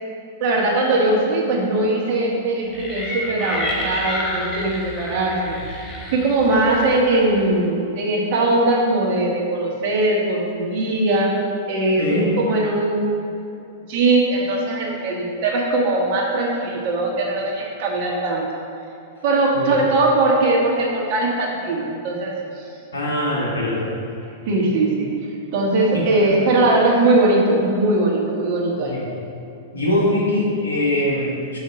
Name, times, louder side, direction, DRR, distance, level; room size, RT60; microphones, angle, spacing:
voice 1, 0.4-11.3 11.7-13.1 13.9-18.5 19.2-22.6 24.5-25.1 25.5-29.0, right 2 dB, 55° right, -1 dB, 1.5 m, -20 dB
sound 1, 2.7-7.5, left 1 dB, 30° left, 1.2 m, -30 dB
voice 2, 12.0-12.3 19.5-19.8 22.9-23.9 28.8-29.1 29.7-31.6, left 1 dB, 90° left, -4 dB, 1.6 m, -22 dB
5.6 x 4.6 x 5.9 m, 2.7 s
hypercardioid pair, 115°, 0 cm